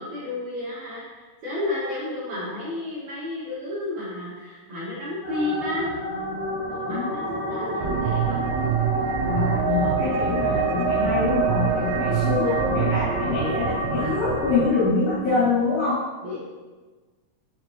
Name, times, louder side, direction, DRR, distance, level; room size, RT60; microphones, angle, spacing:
voice 1, 0.0-5.9 6.7-8.5 12.2-12.6 16.2-16.4, left 2 dB, 70° right, -9 dB, 1.8 m, -32 dB
sound 1, 5.2-14.8, equal, 60° left, 2.1 m, -29 dB
sound 2, 7.8-14.7, right 9 dB, 85° right, 2.6 m, -26 dB
voice 2, 9.2-16.0, left 4 dB, 75° left, -10 dB, 4.6 m, -25 dB
7.7 x 7.3 x 3.0 m, 1.4 s
omnidirectional pair, 5.6 m